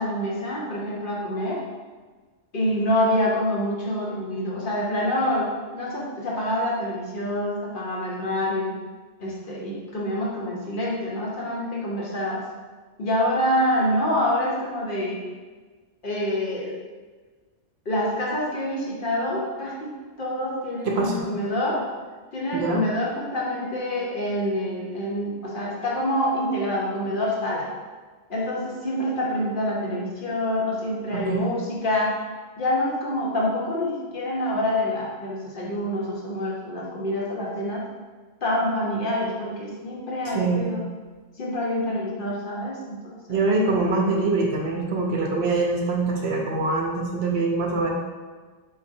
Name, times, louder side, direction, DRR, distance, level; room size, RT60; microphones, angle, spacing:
voice 1, 0.0-1.6 2.5-8.7 9.2-12.4 13.0-15.2 16.0-16.8 17.9-19.9 20.2-21.8 22.3-27.7 28.3-32.2 32.6-37.9 38.4-40.8 41.4-43.5, left 1 dB, 50° left, -4 dB, 0.9 m, -26 dB
voice 2, 20.9-21.2 22.5-22.8 31.1-31.4 40.3-40.6 43.3-47.9, right 3 dB, 65° right, 0 dB, 0.8 m, -24 dB
4.2 x 3.9 x 2.6 m, 1.4 s
omnidirectional pair, 1.2 m